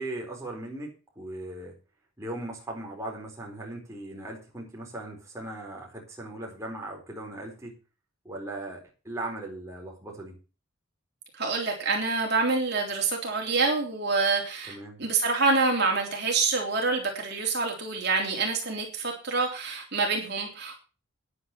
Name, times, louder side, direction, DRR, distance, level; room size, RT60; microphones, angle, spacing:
voice 1, 0.0-1.7 2.2-7.8 8.2-10.4 14.7-15.0, right 2 dB, 15° right, -2 dB, 4.2 m, -38 dB
voice 2, 11.3-20.8, right 4 dB, 50° right, 0 dB, 3.6 m, -27 dB
10.5 x 9.3 x 5.8 m, 0.33 s
head